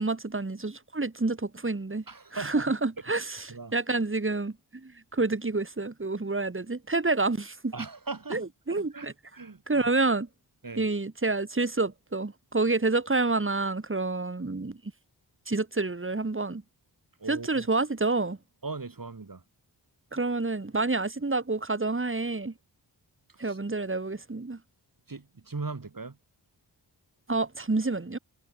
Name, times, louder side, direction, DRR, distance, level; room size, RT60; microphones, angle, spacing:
voice 1, 0.0-2.0 2.3-3.5 3.7-7.7 8.3-9.1 9.7-10.3 10.8-14.8 15.5-16.6 17.3-18.4 20.1-22.5 23.4-24.6 27.3-28.2, right 3 dB, 30° right, 2.6 m, -28 dB
voice 2, 2.1-2.7 3.5-3.7 7.7-9.9 10.6-10.9 17.2-17.7 18.6-19.4 23.4-23.6 25.1-26.2, right 4 dB, 50° right, 5.9 m, -39 dB
wide cardioid pair, 85°, 44 cm